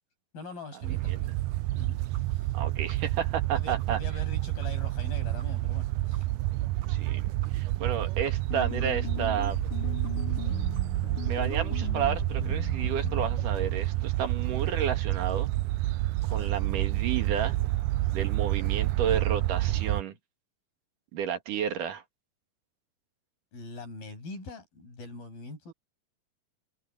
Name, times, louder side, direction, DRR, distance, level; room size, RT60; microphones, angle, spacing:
voice 1, 0.3-1.3 1.7-2.0 2.3-2.5 3.5-6.3 16.3-16.5 23.5-25.7, left 3 dB, 80° left, 9.8 m, -43 dB
sound 1, 0.8-20.0, right 17 dB, 90° right, 1.7 m, -29 dB
voice 2, 0.9-1.2 2.5-4.0 6.9-9.6 11.3-15.5 16.3-17.6 18.1-20.2 21.1-22.0, right 8 dB, 65° right, 3.4 m, -32 dB
sound 2, 2.1-2.2 2.5-2.6 2.9-3.0 3.4-3.5 3.8-3.9 4.2-4.3 4.6-4.7 5.0-5.1 5.4-5.5 5.7-5.8 6.1-6.2 6.5-6.6 6.8-7.2 7.4-9.1 9.4-9.8 10.0-10.4 10.7-10.8 11.1-11.2 11.5-11.6, right 6 dB, 40° right, 9.0 m, -54 dB
sound 3, 8.5-13.8, left 9 dB, 60° left, 2.8 m, -38 dB
omnidirectional pair, 4.1 m